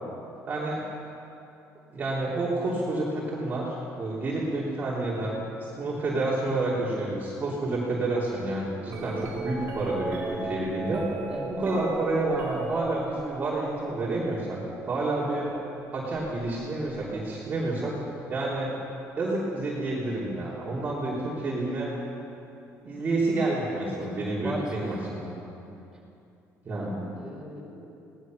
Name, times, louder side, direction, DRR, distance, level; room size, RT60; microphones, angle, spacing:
voice 1, 0.5-0.8 1.9-11.1 11.5-14.6 14.9-15.5 15.9-17.9 18.3-18.7 19.2-21.9 22.8-25.3 26.6-26.9, right 2 dB, 30° right, -7 dB, 3.1 m, -29 dB
sound 1, 8.9-19.0 19.9-20.3 21.1-22.1 23.8-23.9, right 3 dB, 45° right, 2.7 m, -39 dB
voice 2, 23.7-24.6 26.7-27.7, right 1 dB, 5° right, -4 dB, 5.0 m, -38 dB
22.0 x 18.5 x 6.4 m, 2.8 s
cardioid pair, 160°, 6 cm